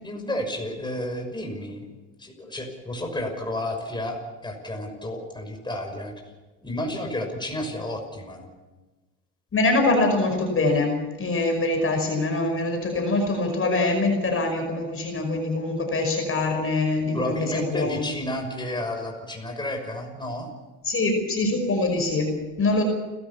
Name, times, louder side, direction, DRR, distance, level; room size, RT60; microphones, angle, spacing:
voice 1, 0.0-1.9 2.2-6.1 6.6-8.5 17.1-20.5, left 1 dB, 10° left, 2 dB, 6.1 m, -31 dB
voice 2, 9.5-18.1 20.9-22.8, left 2 dB, 35° left, 3 dB, 5.5 m, -24 dB
30.0 x 13.0 x 7.1 m, 1.2 s
hypercardioid pair, 75°, 38 cm